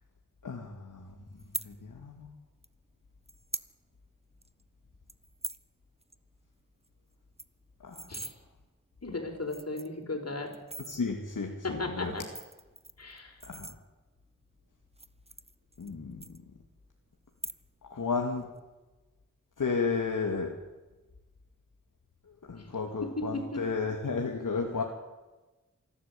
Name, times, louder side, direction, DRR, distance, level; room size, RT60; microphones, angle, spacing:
voice 1, 0.4-1.1 1.6-2.3 7.8-8.0 10.9-12.1 13.4-13.7 15.8-16.2 17.9-18.4 19.6-20.5 22.5-24.8, left 4 dB, 80° left, 1 dB, 2.3 m, -32 dB
sound 1, 1.4-1.7 2.6-2.7 3.3-3.7 4.1-4.2 4.4-4.6 5.1-5.6 6.0-6.1 6.4-6.5 6.8-6.9 7.2-8.3 9.0-9.1 9.4-10.0 10.5-11.0 12.0-14.2 14.9-15.9 16.2-16.8 17.3-17.9 18.2-18.6, right 2 dB, 20° right, 1.0 m, -41 dB
voice 2, 9.0-10.6 11.6-12.2 13.0-13.3 23.0-23.7, left 2 dB, 50° left, 3 dB, 5.0 m, -35 dB
26.0 x 12.5 x 8.4 m, 1.1 s
cardioid pair, 45°, 31 cm